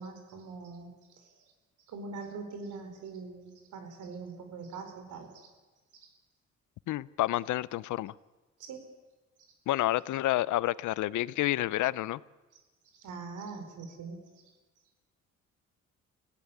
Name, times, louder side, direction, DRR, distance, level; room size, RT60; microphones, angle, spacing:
voice 1, 0.0-1.3 1.9-5.5 5.9-6.1 8.6-8.8 12.9-14.3, right 4 dB, 80° right, 5 dB, 4.6 m, -43 dB
voice 2, 6.9-8.1 9.7-12.2, left 15 dB, 75° left, 20 dB, 0.7 m, -29 dB
25.0 x 16.5 x 9.9 m, 1.2 s
cardioid pair, 160°, 30 cm